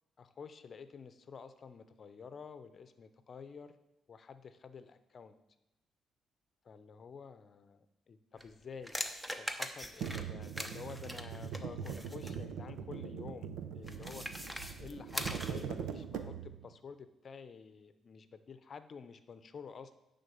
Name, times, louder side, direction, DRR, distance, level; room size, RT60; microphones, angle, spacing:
voice 1, 0.2-3.8 4.1-5.4 6.6-8.9 9.4-13.5 13.7-14.3 14.8-20.0, left 5 dB, 45° left, 11 dB, 0.7 m, -50 dB
sound 1, 8.4-12.4 13.8-15.7, equal, 5° right, 0.9 m, -42 dB
sound 2, 10.0-16.7, right 7 dB, 85° right, 0.7 m, -42 dB
10.5 x 3.9 x 7.0 m, 0.98 s
cardioid pair, 90°, 0 cm